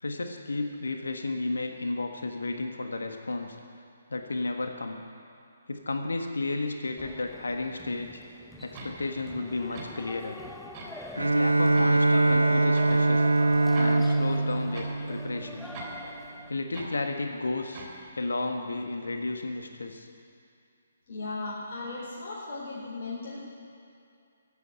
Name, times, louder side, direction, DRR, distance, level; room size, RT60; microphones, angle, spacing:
voice 1, 0.0-3.6 4.1-5.0 5.7-8.1 8.6-10.4 11.2-13.2 13.8-15.7 16.5-17.9 18.1-20.1, left 2 dB, 75° left, 4 dB, 1.5 m, -32 dB
sound 1, 7.0-16.5, left 2 dB, 5° left, 0.7 m, -44 dB
sound 2, 8.7-9.0 9.7-9.9 10.7-10.9 11.7-11.9 12.7-13.0 13.7-13.9 14.7-14.9 15.7-16.0 16.7-17.0 17.7-18.0, right 3 dB, 30° right, 3.2 m, -41 dB
Bowed string instrument, 11.2-15.9, right 2 dB, 85° right, 0.6 m, -23 dB
voice 2, 21.1-23.4, left 3 dB, 45° left, -6 dB, 4.2 m, -36 dB
14.5 x 8.6 x 9.0 m, 2.5 s
figure-of-eight pair, 140°, 0 cm